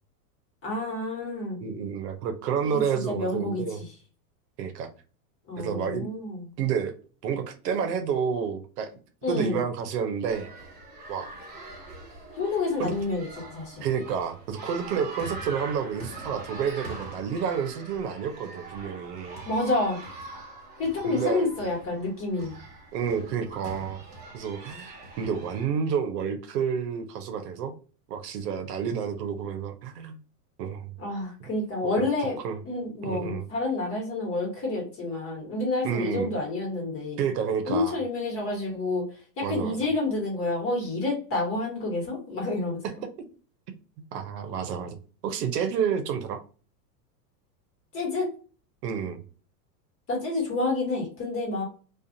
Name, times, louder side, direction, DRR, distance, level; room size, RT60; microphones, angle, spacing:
voice 1, 0.6-1.6 2.6-2.8 3.1-3.6 5.5-6.5 9.2-9.6 12.3-13.8 19.4-20.0 20.8-22.6 31.0-32.4 32.6-37.2 37.6-39.0 39.4-42.8 47.9-48.3 50.1-51.6, left 2 dB, 25° left, 1.3 m, -29 dB
voice 2, 1.6-3.8 4.6-4.9 5.6-6.1 6.6-6.9 7.2-8.9 9.3-10.5 11.1-11.3 12.8-12.9 13.8-19.4 21.0-21.5 22.9-24.0 24.3-27.7 28.1-30.2 30.6-30.9 32.4-32.6 33.0-33.4 35.8-36.3 37.2-38.0 39.4-39.8 44.1-45.0 45.2-46.4 48.8-49.2, right 7 dB, 75° right, 0.8 m, -29 dB
sound 1, 10.2-25.7, right 2 dB, 20° right, 1.0 m, -43 dB
2.4 x 2.4 x 2.6 m
supercardioid pair, 135°, 49 cm